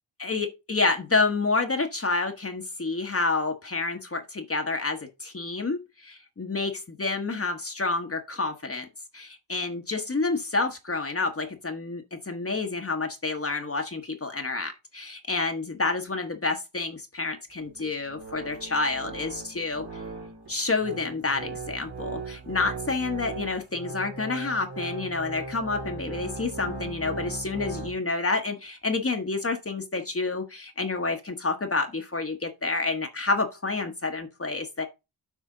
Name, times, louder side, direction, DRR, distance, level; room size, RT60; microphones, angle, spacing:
voice 1, 0.2-8.9 9.1-19.8 20.5-34.9, left 3 dB, 35° left, 1.1 m, -29 dB
sound 1, 17.5-28.0, right 3 dB, 75° right, 3.5 m, -38 dB
8.3 x 4.9 x 3.7 m
cardioid pair, 60°, 41 cm